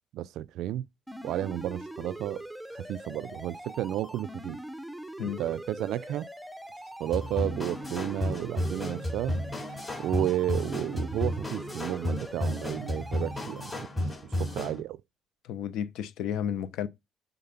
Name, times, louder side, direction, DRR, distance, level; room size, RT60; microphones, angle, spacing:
voice 1, 0.1-0.9 1.2-2.4 2.7-4.6 5.2-6.3 7.0-9.4 10.0-13.9 14.4-15.0, right 13 dB, 75° right, 0.4 m, -32 dB
sound 1, 1.1-13.7, equal, ahead, 0.6 m, -42 dB
sound 2, 7.1-14.8, left 1 dB, 15° left, 3.4 m, -33 dB
voice 2, 15.5-16.9, left 9 dB, 80° left, 0.9 m, -32 dB
8.6 x 4.0 x 5.7 m
cardioid pair, 150°, 0 cm